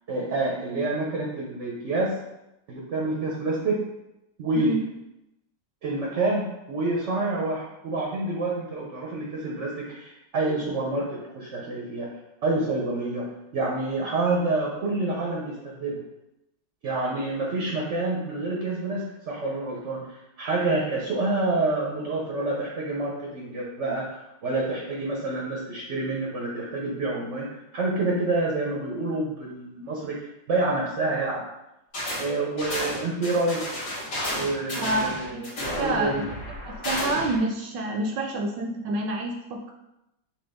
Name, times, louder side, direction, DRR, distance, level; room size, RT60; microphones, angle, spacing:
voice 1, 0.1-2.2 2.7-3.8 4.4-4.8 5.8-12.1 12.4-13.3 13.5-16.0 16.8-24.1 24.4-31.4 32.2-33.6 34.4-36.2, right 2 dB, 60° right, -2 dB, 0.8 m, -28 dB
sound 1, 31.9-32.3 32.6-37.4, left 1 dB, 50° left, 1.9 m, -32 dB
voice 2, 34.8-35.4 35.7-36.2 36.6-39.7, right 2 dB, 75° right, 2 dB, 1.2 m, -28 dB
6.1 x 2.3 x 3.5 m, 0.89 s
omnidirectional pair, 1.9 m